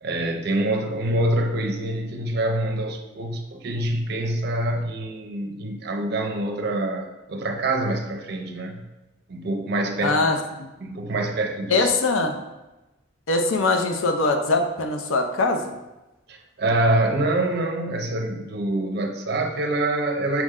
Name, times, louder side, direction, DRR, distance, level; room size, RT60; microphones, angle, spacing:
voice 1, 0.0-8.8 9.3-10.2 10.8-11.9 16.3-20.4, right 1 dB, 55° right, 4 dB, 0.5 m, -25 dB
voice 2, 10.0-10.7 11.7-12.4 13.3-15.7, left 3 dB, 80° left, 4 dB, 0.5 m, -22 dB
5.8 x 2.1 x 3.6 m, 1.0 s
head